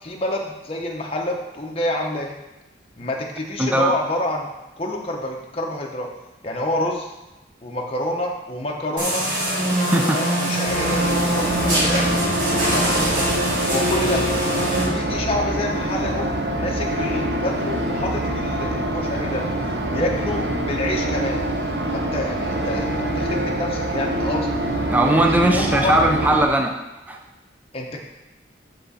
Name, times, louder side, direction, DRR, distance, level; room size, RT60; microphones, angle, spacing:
voice 1, 0.0-2.3 3.0-4.5 4.8-6.1 6.4-7.1 7.6-9.3 10.0-12.1 12.6-13.0 13.6-14.2 14.8-19.4 19.9-21.4 21.9-24.5 25.2-25.9 27.7-28.0, left 1 dB, 30° left, 0 dB, 0.7 m, -28 dB
voice 2, 3.6-3.9 9.8-10.2 24.9-26.7 27.1-27.2, right 1 dB, 10° right, 2 dB, 0.5 m, -19 dB
sound 1, 9.0-14.8, equal, 85° right, 2.6 m, -22 dB
sound 2, 10.7-26.4, right 1 dB, 65° right, 0.9 m, -25 dB
6.7 x 5.9 x 4.1 m, 1.0 s
head